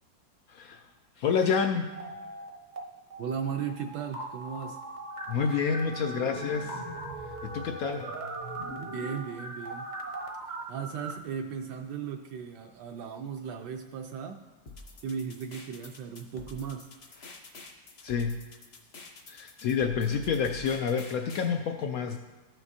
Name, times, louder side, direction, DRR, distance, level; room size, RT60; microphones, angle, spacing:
voice 1, 0.5-0.8 1.2-1.9 5.3-6.7 7.4-8.1 18.0-18.4 19.3-22.2, left 6 dB, 75° left, 5 dB, 0.8 m, -28 dB
sound 1, 1.9-2.8 3.1-11.1, right 2 dB, 40° right, 0.6 m, -39 dB
voice 2, 3.2-4.8 8.9-9.9 10.5-14.4 15.0-16.9, right 7 dB, 75° right, 4 dB, 1.1 m, -36 dB
sound 2, 14.7-21.5, left 3 dB, 45° left, 0.8 m, -48 dB
14.5 x 6.0 x 2.7 m, 1.2 s
omnidirectional pair, 2.0 m